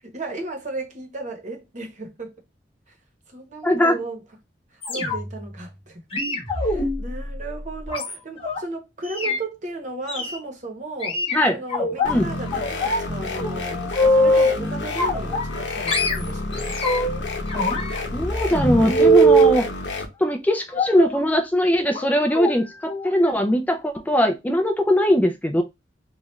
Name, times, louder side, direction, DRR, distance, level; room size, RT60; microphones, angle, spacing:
voice 1, 0.0-2.3 3.3-4.2 4.9-6.0 6.6-11.2 11.5-16.8, right 2 dB, 45° right, 0.9 m, -35 dB
voice 2, 3.6-4.0 6.7-6.9 11.3-11.6 12.0-12.3 18.1-19.7 20.2-25.6, equal, 10° left, 0.4 m, -20 dB
sound 1, 4.8-5.4 6.1-8.6 9.0-9.4 10.1-10.4 11.0-12.1 12.5-13.1 13.4-14.6 15.0-15.6 15.9-17.2 17.5-19.6 20.7-21.2 21.9-22.1 22.3-22.5 22.9-23.1 23.4-23.5, right 1 dB, 35° left, 1.0 m, -22 dB
sound 2, 12.0-20.1, left 2 dB, 85° left, 0.8 m, -30 dB
3.2 x 2.3 x 3.0 m
head